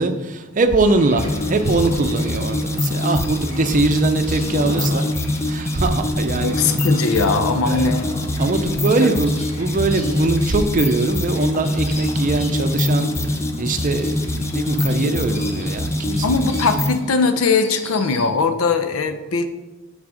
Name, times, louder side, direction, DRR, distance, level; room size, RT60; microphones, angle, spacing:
voice 1, 0.0-5.1 5.5-6.6 7.6-7.9 8.4-16.4, right 3 dB, 40° right, 8 dB, 0.6 m, -21 dB
sound 1, 0.8-18.3, left 1 dB, 30° left, 1.2 m, -35 dB
sound 2, 1.2-17.0, left 1 dB, 15° left, 0.4 m, -24 dB
voice 2, 6.4-8.1 8.7-8.8 16.2-19.5, left 4 dB, 90° left, 9 dB, 0.6 m, -20 dB
6.1 x 4.1 x 6.3 m, 1.2 s
head